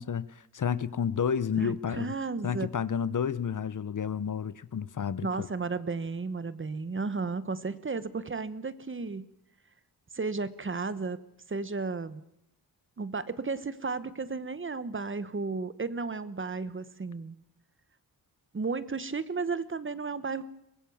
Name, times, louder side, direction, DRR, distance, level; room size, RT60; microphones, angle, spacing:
voice 1, 0.0-2.1 2.4-5.5, left 7 dB, 50° left, 0.8 m, -31 dB
voice 2, 1.6-2.7 5.2-9.3 10.1-11.2 11.5-12.2 13.0-17.3 18.5-20.5, right 4 dB, 30° right, 1.0 m, -33 dB
23.5 x 21.0 x 7.1 m
wide cardioid pair, 165°, 39 cm